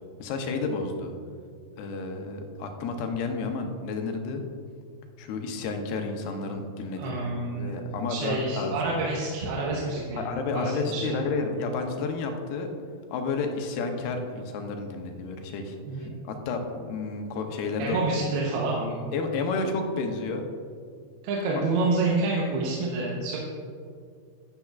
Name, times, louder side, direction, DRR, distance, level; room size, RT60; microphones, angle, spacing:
voice 1, 0.2-1.1 1.8-4.4 5.2-9.0 10.2-12.7 13.1-18.1 19.1-20.5 21.5-21.6, left 4 dB, 85° left, 4 dB, 2.8 m, -31 dB
voice 2, 7.0-7.7 8.1-10.2 10.5-11.1 15.9-16.2 17.8-19.0 21.2-23.4, right 3 dB, 85° right, -3 dB, 2.9 m, -28 dB
11.5 x 11.0 x 2.4 m, 2.2 s
omnidirectional pair, 4.4 m